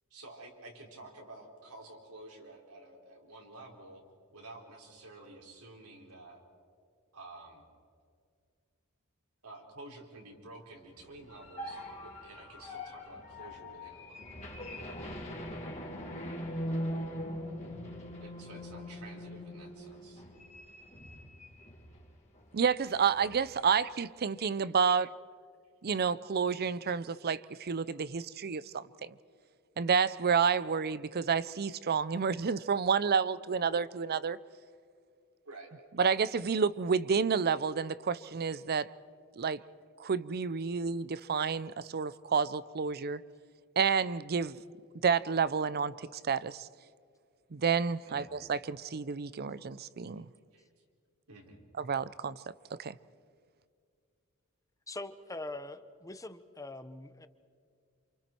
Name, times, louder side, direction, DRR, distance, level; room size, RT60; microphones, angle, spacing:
voice 1, 0.1-4.0 4.3-6.4 7.1-7.7 9.4-14.3 18.2-20.2 35.4-35.7 40.7-40.8 48.0-48.3 50.5-50.7 51.3-51.7, right 2 dB, 90° right, 4.2 m, -51 dB
sound 1, 11.0-22.0 22.4-22.6 22.9-23.6, equal, 30° left, 3.2 m, -41 dB
voice 2, 22.5-25.2 25.8-29.1 29.8-34.4 36.0-38.9 39.4-39.6 40.0-43.2 43.8-44.6 45.0-46.7 47.5-50.3 51.8-52.4 52.8-53.0, right 6 dB, 45° right, 0.5 m, -30 dB
voice 3, 54.9-57.3, left 2 dB, 15° left, 0.9 m, -43 dB
28.5 x 27.5 x 4.5 m
head